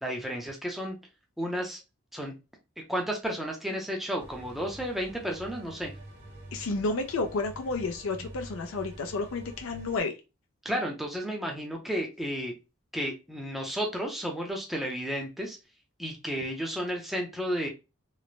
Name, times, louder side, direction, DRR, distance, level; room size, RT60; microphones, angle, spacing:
voice 1, 0.0-1.0 1.4-1.8 2.1-2.3 2.9-5.9 10.6-12.5 12.9-15.6 16.0-17.7, equal, ahead, 1 dB, 0.5 m, -32 dB
sound 1, 4.2-10.0, right 1 dB, 50° right, 0.8 m, -46 dB
voice 2, 6.5-10.1, left 3 dB, 70° left, 4 dB, 0.4 m, -31 dB
3.1 x 2.0 x 2.3 m, 0.27 s
head